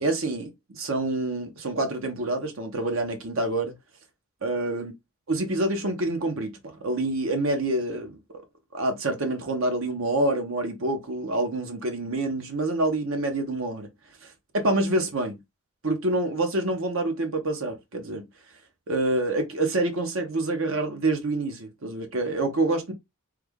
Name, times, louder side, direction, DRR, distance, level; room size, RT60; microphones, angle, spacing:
voice 1, 0.0-3.7 4.4-4.9 5.3-8.2 8.7-13.9 14.5-15.4 15.8-18.3 18.9-22.9, right 2 dB, 70° right, 0.9 m, -27 dB
3.3 x 2.3 x 3.5 m
head